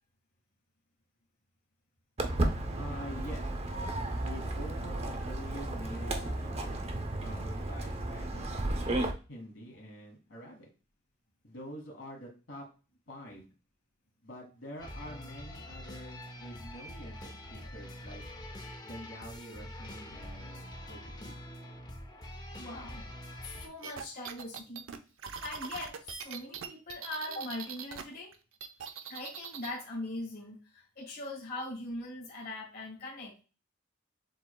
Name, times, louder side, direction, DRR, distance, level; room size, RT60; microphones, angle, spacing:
Walk footsteps, 2.2-9.1, right 1 dB, 30° right, 0.6 m, -33 dB
voice 1, 2.8-3.5 4.2-6.8 7.2-10.7 11.4-12.6 13.1-13.4 14.2-18.2 18.8-21.4, equal, 65° left, -1 dB, 1.7 m, -46 dB
sound 1, 14.8-23.7, left 1 dB, 20° left, 0.6 m, -45 dB
voice 2, 22.6-23.0 23.4-24.8 25.4-28.3 29.1-33.4, left 1 dB, 50° left, -3 dB, 1.6 m, -41 dB
sound 2, 23.8-28.0 28.3-29.7, right 6 dB, 85° right, 0.6 m, -41 dB
7.3 x 3.2 x 2.2 m, 0.33 s
head